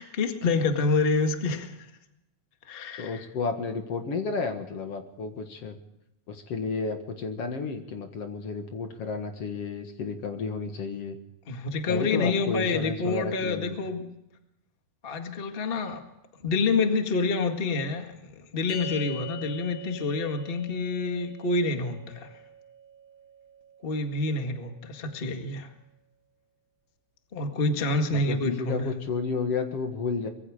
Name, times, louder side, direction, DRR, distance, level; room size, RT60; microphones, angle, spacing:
voice 1, 0.0-1.7 2.7-3.2 11.5-14.0 15.0-16.0 16.4-22.3 23.8-25.7 27.3-28.9, left 3 dB, 25° left, 5 dB, 1.5 m, -27 dB
voice 2, 3.0-5.8 6.3-11.2 11.9-13.8 28.1-30.3, left 4 dB, 55° left, 6 dB, 2.6 m, -32 dB
sound 1, 18.7-25.2, equal, 75° left, 7.4 m, -43 dB
24.0 x 22.0 x 5.0 m, 0.88 s
omnidirectional pair, 3.4 m